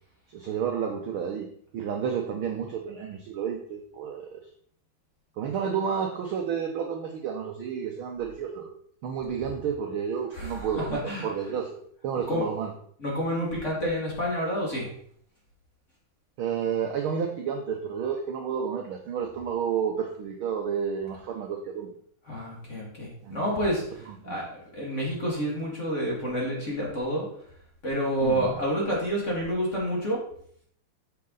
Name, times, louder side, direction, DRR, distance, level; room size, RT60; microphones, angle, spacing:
voice 1, 0.3-1.5 1.7-4.4 5.4-8.7 9.0-12.7 16.4-21.9 23.2-23.4 24.1-24.4 28.2-28.6, right 7 dB, 70° right, 2 dB, 1.3 m, -31 dB
voice 2, 10.3-11.3 12.3-12.4 13.0-14.9 22.3-24.5 24.7-27.2 27.8-30.2, equal, 25° left, -3 dB, 2.3 m, -29 dB
8.6 x 6.6 x 4.0 m, 0.62 s
omnidirectional pair, 3.3 m